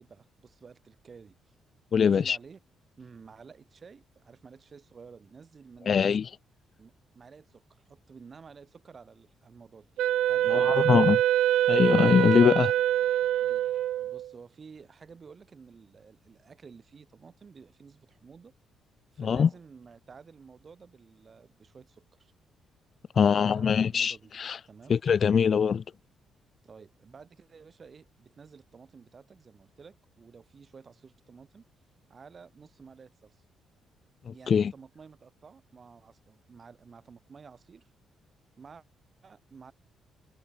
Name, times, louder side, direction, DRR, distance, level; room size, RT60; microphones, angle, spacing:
voice 1, 0.0-1.3 2.0-2.6 3.0-6.2 6.8-9.9 10.3-11.2 13.4-13.7 14.0-18.5 19.1-22.3 23.1-24.3 24.7-25.0 26.6-31.6 32.1-33.4 34.3-37.9 38.6-38.8 39.2-39.7, right 5 dB, 40° right, 7.6 m, -52 dB
voice 2, 1.9-2.4 5.9-6.3 10.5-11.2 11.7-12.7 19.2-19.5 23.2-24.6 24.9-25.8 34.3-34.7, left 7 dB, 50° left, 0.5 m, -23 dB
Wind instrument woodwind instrument, 10.0-14.3, right 12 dB, 80° right, 0.7 m, -25 dB
cardioid pair, 90°, 0 cm